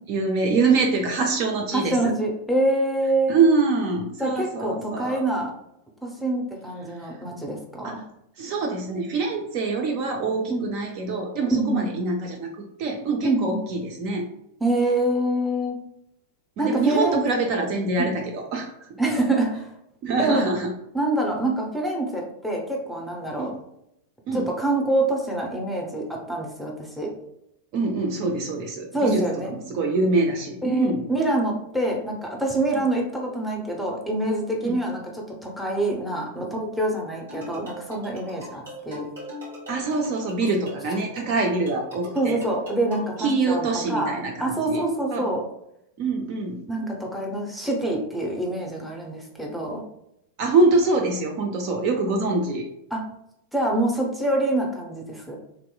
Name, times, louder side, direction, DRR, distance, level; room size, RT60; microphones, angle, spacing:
voice 1, 0.1-2.1 3.3-5.2 7.8-8.0 8.4-12.5 12.8-14.3 16.6-18.7 20.0-20.7 23.4-23.5 24.3-24.5 27.7-31.1 32.7-32.8 34.6-34.8 39.7-42.4 43.2-44.8 45.1-45.3 46.0-46.6 50.4-52.7, right 3 dB, 40° right, 2 dB, 0.4 m, -24 dB
voice 2, 1.7-3.4 4.2-5.5 6.0-8.0 10.5-10.7 11.5-11.9 13.2-13.6 14.6-15.8 16.6-17.2 18.0-18.1 19.0-19.7 20.2-20.5 20.9-23.5 24.3-27.1 28.9-29.5 30.6-39.1 42.1-45.4 46.7-49.8 52.9-53.0 53.5-55.4, right 1 dB, ahead, -1 dB, 0.7 m, -26 dB
sound 1, 37.3-43.2, left 1 dB, 65° right, 1.3 m, -40 dB
3.0 x 2.9 x 2.2 m, 0.79 s
figure-of-eight pair, 90°, 0 cm